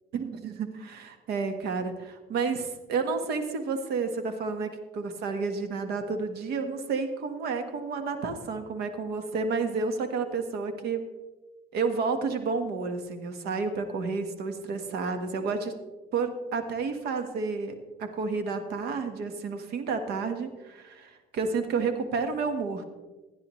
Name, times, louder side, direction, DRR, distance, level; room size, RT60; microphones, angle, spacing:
voice 1, 0.1-11.0 11.7-15.7 16.1-17.7 18.0-22.8, right 4 dB, 75° right, 8 dB, 1.5 m, -30 dB
16.5 x 9.8 x 3.2 m, 1.2 s
cardioid pair, 95°, 17 cm